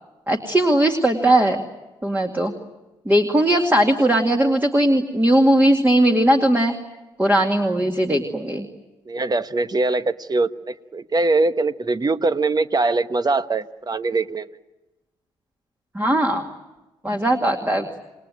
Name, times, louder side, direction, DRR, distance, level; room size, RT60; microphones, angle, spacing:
voice 1, 0.3-1.6 2.0-2.5 3.1-6.7 7.2-8.7 15.9-16.4 17.0-17.9, right 1 dB, 15° right, 3 dB, 2.3 m, -18 dB
voice 2, 9.1-14.5, right 3 dB, 30° right, 13 dB, 1.1 m, -22 dB
28.0 x 20.5 x 9.2 m, 1.1 s
hypercardioid pair, 45°, 14 cm